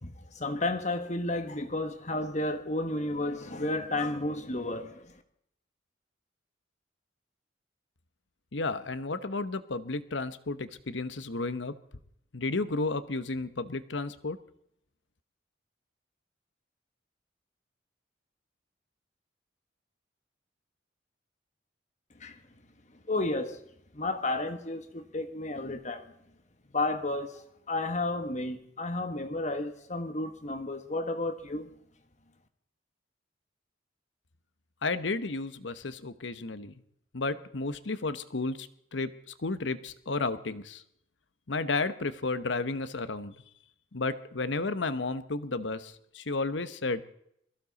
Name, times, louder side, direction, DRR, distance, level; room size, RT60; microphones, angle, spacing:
voice 1, 0.0-5.1 22.2-22.4 23.1-23.6 23.9-26.0 26.7-31.7, left 2 dB, 40° left, 1.4 m, -32 dB
voice 2, 8.5-11.7 12.3-14.4 34.8-36.7 37.1-40.8 41.5-43.3 43.9-47.0, left 3 dB, 80° left, 1.0 m, -32 dB
22.0 x 15.0 x 4.1 m
head